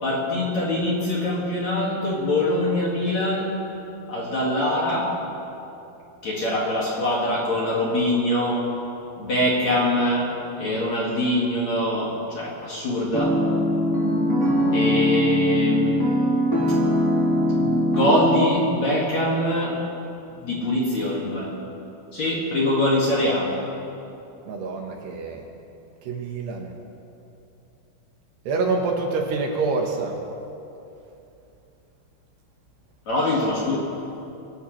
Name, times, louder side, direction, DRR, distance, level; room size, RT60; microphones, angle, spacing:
voice 1, 0.0-3.5 4.1-5.1 6.2-8.6 9.2-10.3 10.6-13.4 14.7-16.0 17.6-19.8 20.3-21.5 22.1-23.5 33.1-33.8, left 1 dB, 45° left, -5 dB, 2.6 m, -23 dB
sound 1, 13.1-18.4, left 1 dB, 20° left, 0.5 m, -21 dB
voice 2, 24.5-25.4 26.1-26.7 28.5-30.2, right 3 dB, 70° right, 1 dB, 3.1 m, -26 dB
25.0 x 17.0 x 3.3 m, 2.8 s
omnidirectional pair, 5.4 m